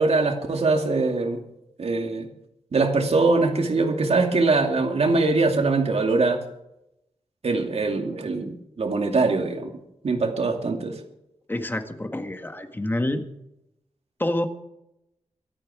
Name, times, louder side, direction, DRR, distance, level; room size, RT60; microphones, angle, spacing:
voice 1, 0.0-1.4 1.8-2.3 2.7-6.4 7.4-9.7 10.0-10.9, right 3 dB, 60° right, 3 dB, 2.5 m, -22 dB
voice 2, 11.5-13.3 14.2-14.5, left 1 dB, 15° left, 7 dB, 1.6 m, -27 dB
24.0 x 8.9 x 4.9 m, 0.84 s
wide cardioid pair, 115°, 12 cm